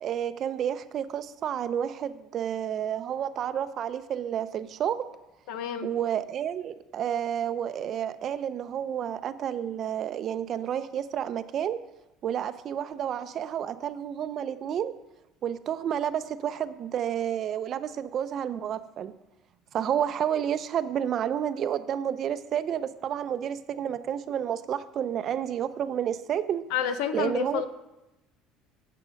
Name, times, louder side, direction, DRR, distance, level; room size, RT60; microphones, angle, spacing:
voice 1, 0.0-5.1 5.8-11.8 12.2-14.9 15.4-19.1 19.7-26.6 27.1-27.7, right 9 dB, 50° right, 13 dB, 0.5 m, -30 dB
voice 2, 5.5-5.9 26.7-27.7, left 8 dB, 80° left, 11 dB, 0.6 m, -29 dB
9.9 x 6.6 x 5.1 m, 0.95 s
supercardioid pair, 95°, 0 cm